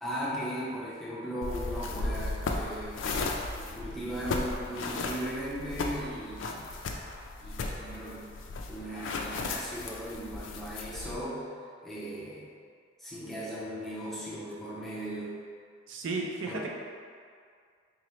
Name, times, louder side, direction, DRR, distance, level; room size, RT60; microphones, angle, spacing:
voice 1, 0.0-3.3 3.5-6.7 7.4-8.3 8.7-11.4 11.8-12.5 13.0-15.3 16.5-16.7, equal, ahead, -8 dB, 0.6 m, -37 dB
sound 1, 1.4-11.2, left 3 dB, 70° left, 0.3 m, -35 dB
voice 2, 15.9-16.7, right 3 dB, 70° right, 0 dB, 0.4 m, -33 dB
3.7 x 2.9 x 3.1 m, 2.1 s
head